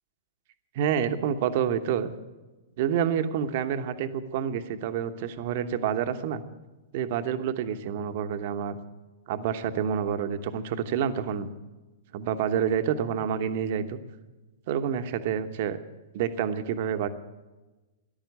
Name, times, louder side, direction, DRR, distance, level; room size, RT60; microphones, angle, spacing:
voice 1, 0.7-2.1 2.8-6.4 6.9-8.8 9.3-11.5 12.1-14.0 14.7-15.8 16.1-17.1, right 8 dB, 50° right, 9 dB, 1.1 m, -28 dB
14.0 x 11.5 x 8.2 m, 1.2 s
figure-of-eight pair, 105°, 0 cm